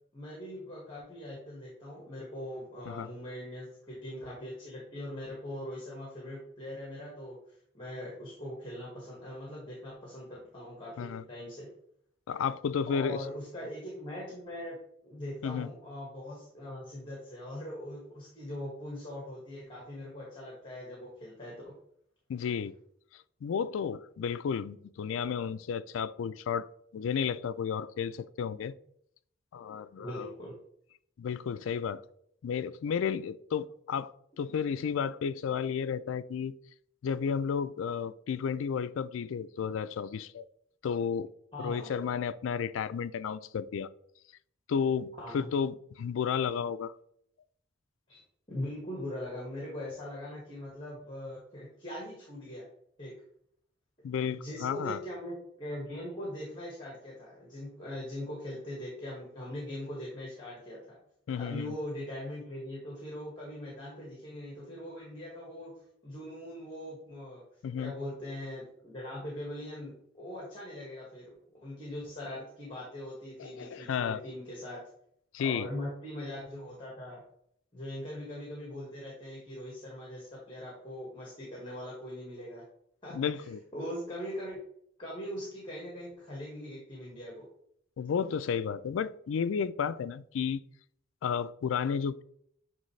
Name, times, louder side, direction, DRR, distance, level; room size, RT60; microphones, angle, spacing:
voice 1, 0.1-7.4 7.7-11.7 12.9-14.8 15.0-21.7 29.9-30.5 41.5-42.2 45.2-45.5 48.1-48.2 48.5-52.6 53.0-53.1 54.2-61.0 61.4-65.7 66.0-67.4 67.8-71.3 71.6-74.8 75.4-77.2 77.7-82.6 83.0-84.6 85.0-87.4, left 1 dB, 25° left, 1.7 m, -41 dB
voice 2, 12.3-13.2 15.4-15.7 22.3-22.7 23.4-26.7 26.9-28.7 29.5-30.3 31.2-32.0 32.4-34.1 34.4-36.5 37.0-40.5 40.8-41.3 41.6-43.9 44.7-46.9 54.0-55.0 61.3-61.7 67.6-67.9 73.4-74.2 75.3-75.7 83.1-83.6 88.0-90.6 91.2-92.2, left 7 dB, 80° left, 0.3 m, -32 dB
8.8 x 3.5 x 3.2 m
head